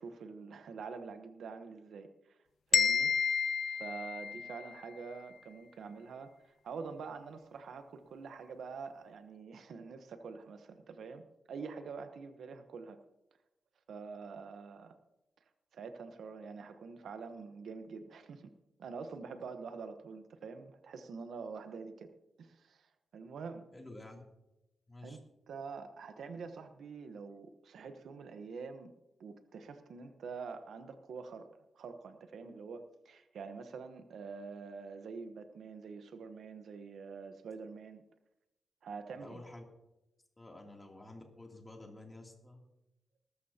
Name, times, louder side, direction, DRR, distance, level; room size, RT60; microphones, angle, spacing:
voice 1, 0.0-2.4 2.7-3.1 3.7-13.0 13.9-15.0 15.7-18.5 18.8-22.1 22.4-23.7 25.0-25.2 25.5-28.9 29.2-38.0 38.8-39.4, right 5 dB, 75° right, 8 dB, 1.0 m, -46 dB
sound 1, 2.7-4.7, left 7 dB, 70° left, 0.6 m, -30 dB
voice 2, 23.7-24.2 24.9-25.2 39.1-39.6 40.4-42.6, left 2 dB, 15° left, 0 dB, 2.8 m, -50 dB
20.0 x 13.0 x 2.9 m, 0.93 s
wide cardioid pair, 120°, 0 cm